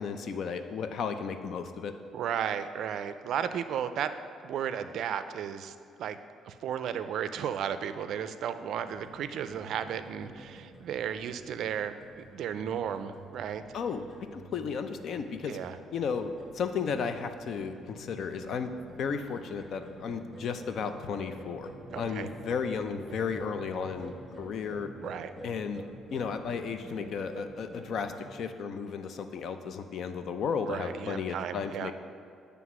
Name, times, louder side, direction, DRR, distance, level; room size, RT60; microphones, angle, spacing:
voice 1, 0.0-1.9 13.7-14.0 14.3-15.6 15.9-18.7 19.0-21.7 22.0-24.9 25.4-25.8 26.1-31.9, left 6 dB, 60° left, 8 dB, 0.5 m, -34 dB
voice 2, 2.1-4.1 4.4-5.7 6.0-6.2 6.4-13.6 15.5-15.8 21.9-22.3 25.0-25.3 30.7-31.9, right 8 dB, 70° right, 11 dB, 0.4 m, -34 dB
sound 1, 8.8-28.3, right 1 dB, 5° left, 1.5 m, -48 dB
9.2 x 3.4 x 6.0 m, 2.4 s
cardioid pair, 120°, 0 cm